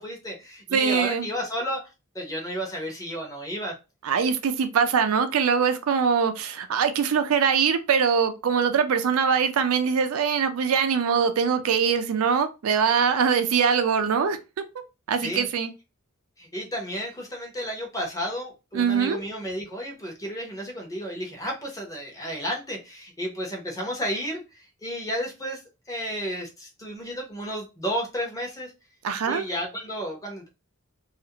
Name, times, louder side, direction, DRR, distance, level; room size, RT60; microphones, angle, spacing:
voice 1, 0.0-1.8 2.1-3.7 15.1-15.5 16.4-25.6 25.9-28.7 29.3-30.5, equal, 15° left, 0.7 m, -32 dB
voice 2, 0.7-1.3 4.0-14.4 15.1-15.7 18.7-19.2 29.0-29.4, right 6 dB, 70° right, 0.4 m, -22 dB
2.4 x 2.0 x 2.8 m
head